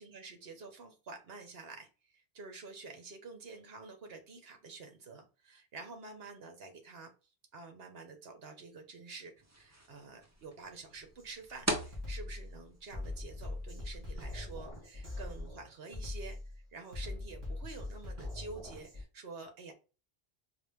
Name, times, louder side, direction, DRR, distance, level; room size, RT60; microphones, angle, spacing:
voice 1, 0.0-7.1 7.5-16.4 16.7-19.7, right 4 dB, 65° right, 5 dB, 1.2 m, -49 dB
sound 1, 9.4-14.7, right 1 dB, 15° right, 0.7 m, -42 dB
Drum kit, 11.2-11.4 11.8-19.0, left 2 dB, 50° right, 2.7 m, -42 dB
4.9 x 2.4 x 3.4 m, 0.34 s
omnidirectional pair, 1.1 m